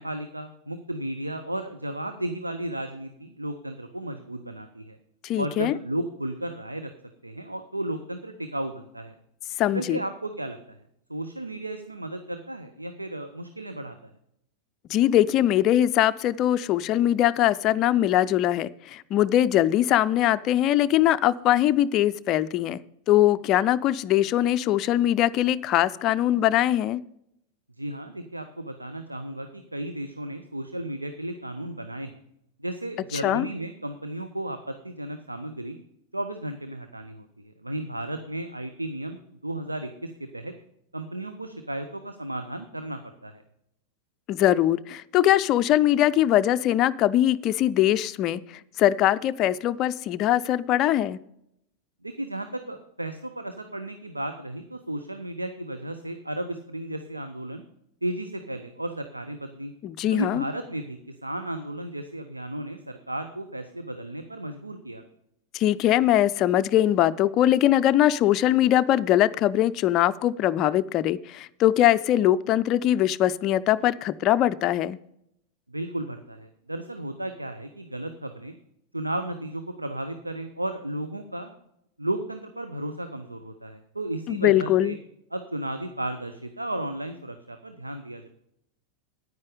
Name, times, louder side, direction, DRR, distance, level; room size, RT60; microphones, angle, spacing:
voice 1, 0.0-5.0 5.4-6.9 7.2-9.1 9.7-10.8 11.1-14.1 27.8-32.1 32.6-35.8 36.1-40.5 40.9-43.4 52.0-57.6 58.0-59.7 60.1-65.0 75.7-78.6 78.9-81.5 82.0-85.0 85.3-88.3, right 1 dB, 85° right, 8 dB, 0.7 m, -34 dB
voice 2, 5.2-5.7 9.6-10.0 14.9-22.8 23.1-27.0 33.2-33.5 44.3-48.4 48.8-51.2 59.8-60.4 65.5-75.0 84.3-84.9, left 12 dB, 35° left, 13 dB, 0.4 m, -22 dB
9.6 x 9.5 x 5.0 m, 0.76 s
figure-of-eight pair, 90°, 0 cm